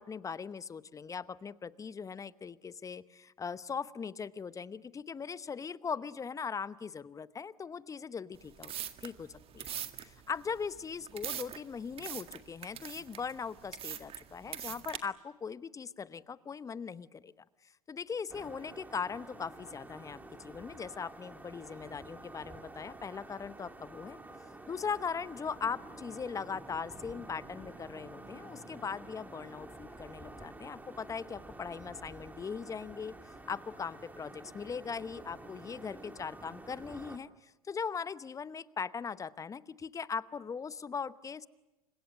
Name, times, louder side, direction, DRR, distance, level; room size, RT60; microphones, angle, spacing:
voice 1, 0.0-8.7 9.0-9.7 10.0-17.3 17.9-24.2 24.7-33.1 33.5-41.5, left 6 dB, 20° left, 17 dB, 0.9 m, -40 dB
sound 1, 8.3-15.0, right 10 dB, 30° right, 1.9 m, -43 dB
sound 2, 18.3-37.2, right 2 dB, 10° right, 2.4 m, -49 dB
29.5 x 26.0 x 6.6 m, 1.0 s
figure-of-eight pair, 85°, 18 cm